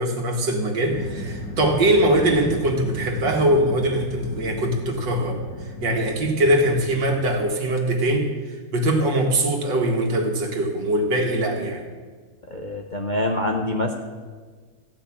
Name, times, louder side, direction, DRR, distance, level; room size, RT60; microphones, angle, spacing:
voice 1, 0.0-5.4 5.8-8.3 8.7-11.8, right 1 dB, 80° right, 2 dB, 2.3 m, -22 dB
sound 1, 0.8-7.4, left 1 dB, 75° left, 2.1 m, -35 dB
voice 2, 12.5-13.9, left 1 dB, 45° left, 0 dB, 0.6 m, -25 dB
15.0 x 5.7 x 8.5 m, 1.5 s
omnidirectional pair, 1.9 m